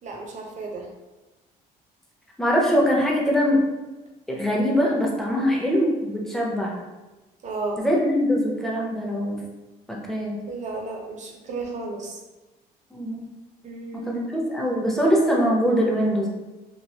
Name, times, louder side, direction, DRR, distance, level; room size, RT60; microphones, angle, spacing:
voice 1, 0.0-0.9 5.4-5.5 7.4-7.8 10.5-12.2 13.6-14.2, right 3 dB, 45° right, 0 dB, 0.7 m, -33 dB
voice 2, 2.4-3.6 4.3-6.8 7.8-9.4 9.9-10.4 12.9-13.3 14.1-14.2 14.5-16.3, equal, ahead, -3 dB, 0.7 m, -22 dB
3.0 x 2.5 x 2.8 m, 1.1 s
cardioid pair, 110°, 17 cm